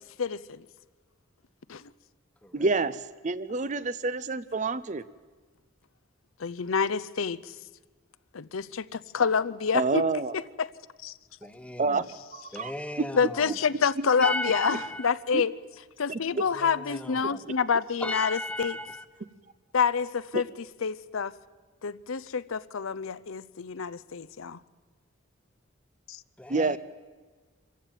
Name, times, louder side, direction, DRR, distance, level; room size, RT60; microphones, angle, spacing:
voice 1, 0.2-0.6 1.7-1.8 6.4-7.5 8.3-10.0 10.3-10.7 11.0-11.1 13.2-15.5 16.0-18.8 19.7-20.5 20.8-21.3 21.8-24.6 26.1-26.2, left 6 dB, 85° left, 15 dB, 0.6 m, -28 dB
voice 2, 2.5-5.0 9.7-10.3 11.8-12.0 12.3-12.7 13.0-13.1 14.0-14.1 15.3-15.4 16.1-16.2 20.3-20.4 26.5-26.8, right 3 dB, 35° right, 15 dB, 0.6 m, -28 dB
voice 3, 11.4-12.0 12.5-13.5 14.2-15.1 16.3-17.5 18.0-19.0 26.4-26.8, left 1 dB, 5° left, 10 dB, 0.9 m, -35 dB
25.0 x 15.0 x 9.2 m, 1.4 s
head